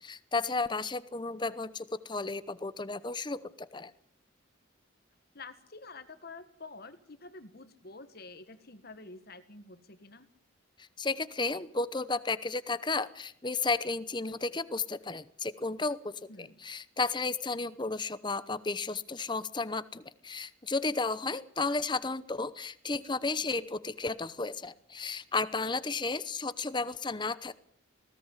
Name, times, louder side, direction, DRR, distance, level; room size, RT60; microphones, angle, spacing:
voice 1, 0.0-3.9 10.8-27.5, left 3 dB, 25° left, 16 dB, 0.8 m, -33 dB
voice 2, 5.3-10.3 16.3-16.7, left 3 dB, 50° left, 11 dB, 1.7 m, -48 dB
19.5 x 17.0 x 8.3 m, 0.66 s
head